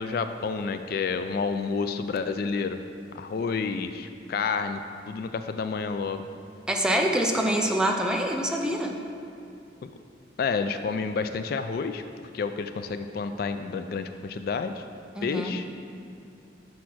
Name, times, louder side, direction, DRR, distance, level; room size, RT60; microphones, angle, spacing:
voice 1, 0.0-2.8 3.1-4.8 5.1-6.3 9.8-9.9 10.4-12.0 12.3-14.8 15.2-15.7, left 5 dB, 55° left, 9 dB, 0.3 m, -29 dB
voice 2, 6.7-9.0 15.2-15.6, right 1 dB, 5° right, 1 dB, 0.5 m, -25 dB
6.2 x 5.7 x 6.1 m, 2.5 s
head